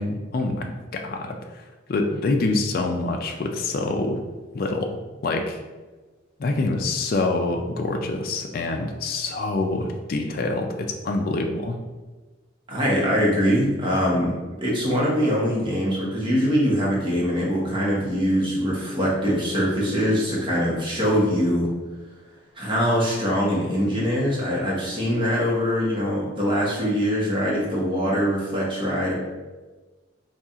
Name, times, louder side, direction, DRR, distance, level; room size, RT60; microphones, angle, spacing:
voice 1, 0.0-4.2 4.5-5.0 5.2-5.6 6.4-11.8, left 2 dB, 50° left, 3 dB, 0.4 m, -26 dB
voice 2, 12.7-21.7 22.6-29.1, equal, 25° right, -4 dB, 1.0 m, -23 dB
4.2 x 2.4 x 3.6 m, 1.3 s
head